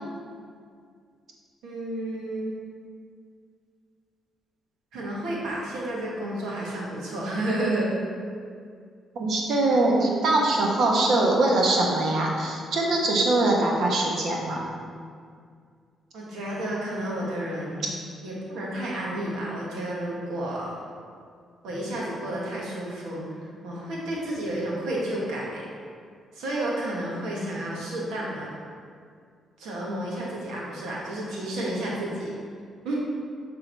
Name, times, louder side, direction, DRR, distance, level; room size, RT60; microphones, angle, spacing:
voice 1, 1.6-2.5 4.9-7.9 16.1-17.8 18.2-20.8 21.6-23.3 23.6-25.7 26.3-28.5 29.6-32.3 32.8-32.9, right 1 dB, 85° right, -4 dB, 1.6 m, -31 dB
voice 2, 9.1-14.6, right 2 dB, 65° right, -1 dB, 1.2 m, -22 dB
6.6 x 3.8 x 4.5 m, 2.2 s
cardioid pair, 90°, 0 cm